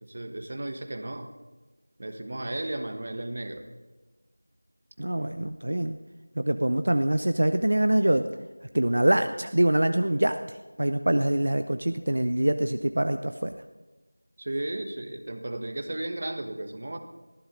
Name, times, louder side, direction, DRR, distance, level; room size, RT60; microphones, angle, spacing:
voice 1, 0.0-1.3 2.0-3.7 14.4-17.0, right 1 dB, 35° right, 7 dB, 1.3 m, -34 dB
voice 2, 5.0-6.0 6.4-8.3 8.7-13.6, right 1 dB, 65° right, 9 dB, 0.7 m, -24 dB
19.5 x 14.5 x 3.8 m, 1.2 s
figure-of-eight pair, 175°, 0 cm